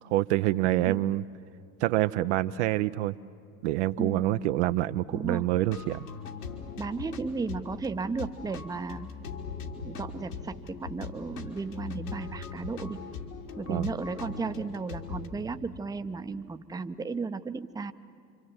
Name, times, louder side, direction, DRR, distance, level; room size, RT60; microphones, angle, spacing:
voice 1, 0.1-1.2 1.8-3.2 3.6-6.1 13.7-13.9, right 15 dB, 50° right, 11 dB, 0.6 m, -26 dB
voice 2, 4.0-4.3 5.1-5.5 6.8-9.1 9.8-13.0 13.6-17.9, right 4 dB, 10° right, 10 dB, 0.7 m, -34 dB
sound 1, 5.6-15.3, left 5 dB, 70° left, 3.1 m, -40 dB
28.0 x 26.5 x 7.9 m, 2.5 s
figure-of-eight pair, 75°, 46 cm